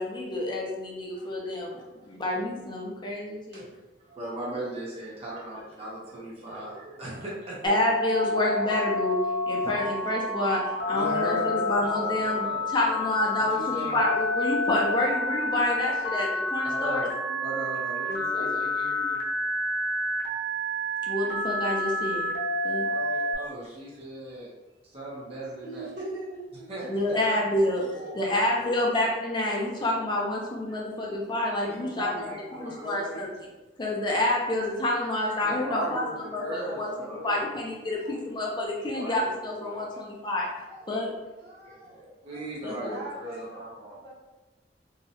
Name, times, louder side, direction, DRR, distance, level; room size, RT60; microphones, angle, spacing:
voice 1, 0.0-1.8 2.0-3.6 7.6-9.2 9.5-17.0 18.1-18.5 21.1-22.3 22.6-22.9 26.8-27.9 28.1-32.3 32.6-33.3 33.8-36.0 36.3-36.9 37.2-40.5 40.9-41.1 42.6-42.9, left 1 dB, 25° left, -2 dB, 0.4 m, -28 dB
voice 2, 1.1-2.4 4.0-7.7 9.5-9.7 10.9-13.1 13.4-14.0 16.6-17.1 17.4-19.2 22.8-24.5 24.8-25.9 26.7-28.7 31.6-33.3 35.4-37.4 38.5-40.0 41.6-44.0, right 1 dB, 35° right, -6 dB, 0.6 m, -38 dB
Telephone, 7.7-23.4, left 1 dB, 85° left, 0.5 m, -29 dB
voice 3, 25.6-26.7 35.0-35.4 37.9-38.2 40.7-40.9 41.4-43.5 43.9-44.2, right 2 dB, 75° right, -8 dB, 1.2 m, -42 dB
2.7 x 2.1 x 2.7 m, 1.1 s
head